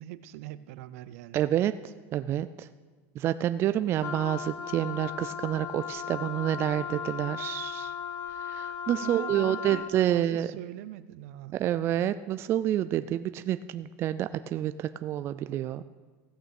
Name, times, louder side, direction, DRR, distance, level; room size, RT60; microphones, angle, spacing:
voice 1, 0.0-1.4 9.0-11.6, right 14 dB, 70° right, 14 dB, 0.6 m, -41 dB
voice 2, 1.3-2.7 3.2-7.9 8.4-10.5 11.6-15.8, right 12 dB, 30° right, 12 dB, 0.3 m, -28 dB
Wind instrument woodwind instrument, 4.0-10.0, left 8 dB, 35° left, 0.8 m, -37 dB
15.0 x 6.2 x 7.0 m, 1.4 s
supercardioid pair, 145°, 8 cm